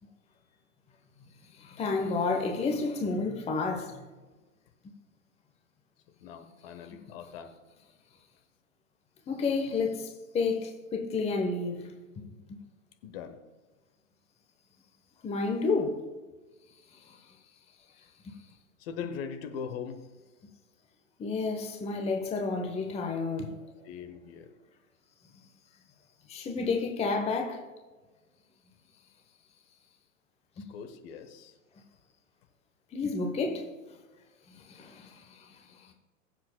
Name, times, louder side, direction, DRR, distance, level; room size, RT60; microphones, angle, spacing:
voice 1, 1.5-4.0 9.3-11.9 15.2-16.0 17.1-17.2 18.2-18.3 21.2-23.6 26.3-27.6 30.6-30.7 32.9-33.7 34.5-35.9, left 4 dB, 15° left, 1.0 m, -31 dB
voice 2, 6.2-7.5 13.0-13.4 18.8-20.0 23.8-24.5 30.7-31.5, left 7 dB, 45° left, 1.2 m, -40 dB
21.5 x 7.5 x 2.3 m
figure-of-eight pair, 105°, 41 cm